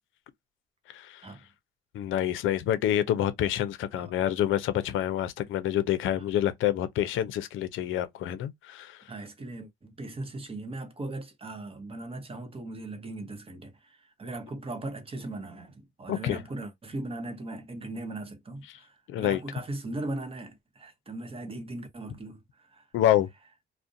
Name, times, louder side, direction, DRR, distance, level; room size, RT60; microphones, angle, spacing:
voice 1, 0.9-1.3 1.9-9.0 16.1-16.4 19.1-19.4 22.9-23.3, left 11 dB, 80° left, 0.5 m, -27 dB
voice 2, 9.1-22.9, right 2 dB, 30° right, 0.8 m, -39 dB
2.4 x 2.1 x 2.5 m
cardioid pair, 90°, 20 cm